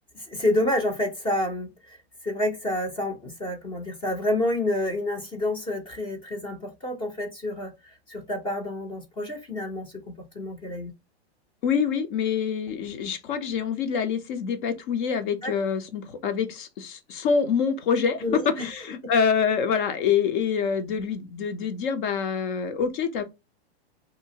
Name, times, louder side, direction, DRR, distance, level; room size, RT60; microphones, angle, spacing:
voice 1, 0.3-2.0 2.2-10.0 10.3-10.9 15.4-15.5 18.2-18.7, left 1 dB, 15° left, 0.7 m, -28 dB
voice 2, 11.6-23.2, left 6 dB, 50° left, 0.8 m, -26 dB
2.8 x 2.6 x 2.8 m
supercardioid pair, 145°, 32 cm